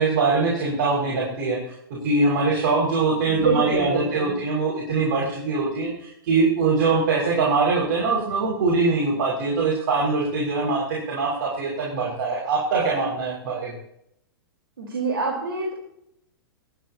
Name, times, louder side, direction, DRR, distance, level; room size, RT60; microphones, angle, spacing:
voice 1, 0.0-1.6 1.9-13.7, right 3 dB, 55° right, -3 dB, 6.1 m, -23 dB
voice 2, 3.3-4.4 14.8-15.7, right 4 dB, 75° right, -2 dB, 4.4 m, -26 dB
26.0 x 12.5 x 3.0 m, 0.74 s
figure-of-eight pair, 105°, 13 cm